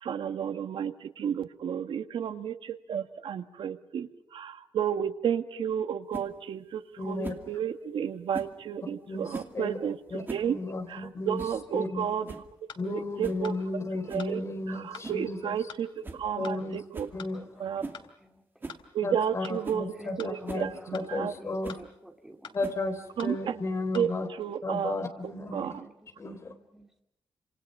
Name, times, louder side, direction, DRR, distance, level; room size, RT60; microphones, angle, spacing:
voice 1, 0.0-10.0 10.3-10.5 10.9-12.3 12.8-13.5 14.1-14.4 14.7-15.9 16.1-17.1 17.6-17.8 18.9-21.3 23.2-23.6 23.9-24.1 24.4-25.0 25.5-25.7, right 8 dB, 75° right, 9 dB, 1.6 m, -32 dB
sound 1, 6.1-6.3 7.2-7.5 8.3-8.6 9.3-9.6 10.1-10.5 10.8-10.9 11.4-11.6 12.0-12.1 12.3-12.5 13.2-13.4 14.1-14.3 15.0-15.3 15.6-15.7 16.0-16.2 16.5-16.6 16.9-17.2 17.8-18.0 18.6-18.8 19.3-19.4 19.6-19.8 20.5-20.7 21.6-21.9 22.6-23.0, right 3 dB, 25° right, 2.4 m, -41 dB
voice 2, 7.0-7.3 9.1-9.8 10.1-11.4 11.7-12.1 12.8-15.6 16.4-16.8 17.1-17.6 19.0-21.8 22.5-24.3 24.6-25.8 26.2-26.5, left 2 dB, 35° left, 6 dB, 3.8 m, -34 dB
voice 3, 11.8-12.2 16.3-16.6 17.1-17.7 18.2-18.4 20.0-21.1 21.4-22.5 25.2-27.0, right 1 dB, 5° right, 3 dB, 2.9 m, -53 dB
sound 2, 12.7-12.9 13.4-13.6 14.2-14.4 14.9-15.1 15.7-15.8 16.4-16.6 17.2-17.4 17.9-18.1 18.7-18.9 19.4-19.6 20.2-20.4 20.9-21.1 21.7-21.8 22.4-22.6 23.2-23.4 23.9-24.0, left 7 dB, 75° left, 3.0 m, -45 dB
30.0 x 27.0 x 5.5 m, 0.81 s
wide cardioid pair, 175°, 9 cm